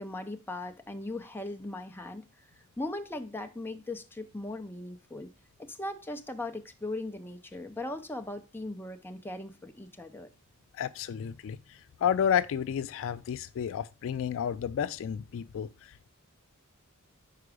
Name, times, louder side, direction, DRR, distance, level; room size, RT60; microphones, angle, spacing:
voice 1, 0.0-2.2 2.8-5.3 5.6-10.3, left 2 dB, 10° left, 0.6 m, -38 dB
voice 2, 10.8-11.6 12.0-16.1, left 8 dB, 60° left, 0.3 m, -31 dB
4.9 x 4.6 x 4.8 m
head